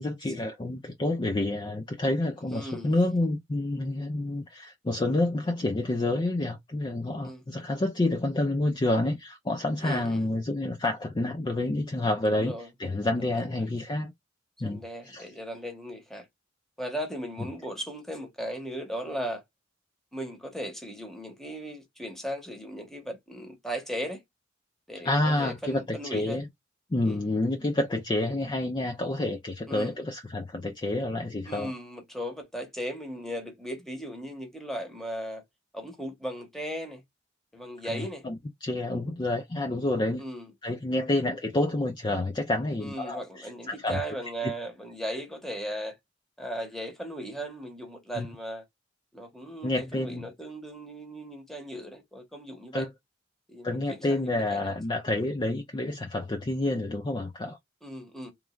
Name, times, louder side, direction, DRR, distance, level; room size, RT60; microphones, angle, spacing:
voice 1, 0.0-14.1 14.6-15.2 25.0-26.5 26.9-31.7 37.9-38.4 38.6-40.2 40.6-44.0 48.2-48.3 49.6-50.2 52.7-52.9 53.6-57.6, left 2 dB, 25° left, 0.4 m, -28 dB
voice 2, 2.5-2.9 7.2-7.4 9.8-10.2 12.3-12.7 13.3-13.4 14.6-16.3 16.8-19.4 20.1-24.2 24.9-26.4 27.0-27.2 29.7-29.9 31.4-35.4 35.7-37.0 37.5-38.3 40.2-40.5 42.8-46.0 46.4-48.6 49.1-52.9 53.5-54.8 57.8-58.3, equal, ahead, 1.0 m, -37 dB
3.1 x 2.3 x 2.3 m
head